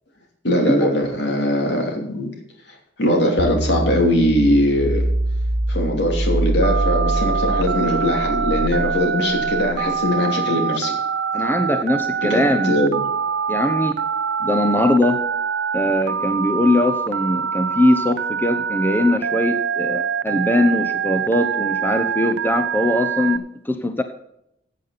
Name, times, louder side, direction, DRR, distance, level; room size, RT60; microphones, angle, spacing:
voice 1, 0.4-2.3 3.0-5.1 5.7-10.9 12.2-13.0, left 1 dB, 65° left, 1 dB, 3.0 m, -20 dB
sound 1, 3.4-9.6, right 1 dB, 30° right, 0.9 m, -24 dB
Telephone, 6.6-23.4, right 6 dB, 70° right, 0.5 m, -24 dB
voice 2, 11.3-12.8 13.5-14.0 14.4-15.2 15.7-24.0, left 1 dB, 10° left, 7 dB, 0.8 m, -21 dB
15.5 x 8.5 x 4.2 m, 0.78 s
head